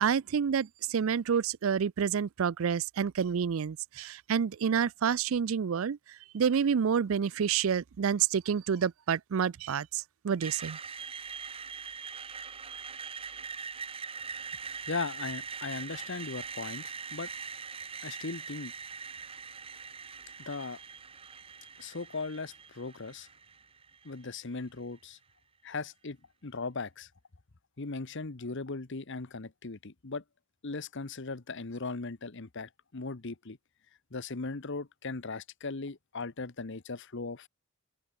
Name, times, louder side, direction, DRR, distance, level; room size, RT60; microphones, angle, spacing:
voice 1, 0.0-6.0 6.3-10.8, right 7 dB, 70° right, 0.4 m, -28 dB
Screech, 10.4-24.4, right 6 dB, 25° right, 1.1 m, -42 dB
voice 2, 14.9-17.3 18.0-18.7 20.4-20.8 21.8-23.3 24.0-25.2 25.6-26.2 26.4-27.1 27.8-30.2 30.6-33.6 34.1-37.5, left 3 dB, 60° left, 1.1 m, -38 dB
open air
head